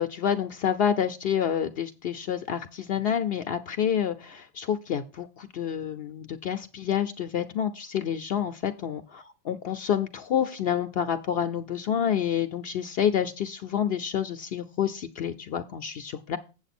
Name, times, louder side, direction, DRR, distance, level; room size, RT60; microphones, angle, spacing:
voice 1, 0.0-9.0 9.4-16.4, left 9 dB, 65° left, 9 dB, 0.8 m, -28 dB
7.9 x 7.6 x 4.2 m, 0.31 s
omnidirectional pair, 1.1 m